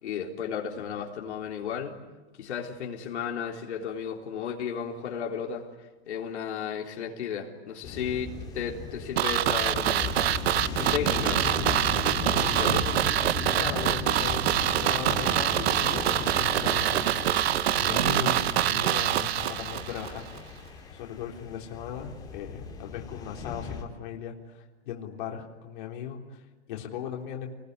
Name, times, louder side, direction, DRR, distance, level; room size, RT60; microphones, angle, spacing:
voice 1, 0.0-2.0 2.4-5.7 6.1-12.2 12.4-13.0, left 7 dB, 80° left, 1 dB, 4.0 m, -34 dB
sound 1, 7.8-23.8, left 5 dB, 10° left, 2.8 m, -36 dB
sound 2, 9.2-20.1 20.4-20.5, right 12 dB, 65° right, 1.0 m, -25 dB
voice 2, 13.6-17.2 17.7-20.4 20.9-27.5, left 8 dB, 45° left, 0 dB, 3.7 m, -38 dB
29.0 x 21.0 x 9.6 m, 1.1 s
supercardioid pair, 170°, 33 cm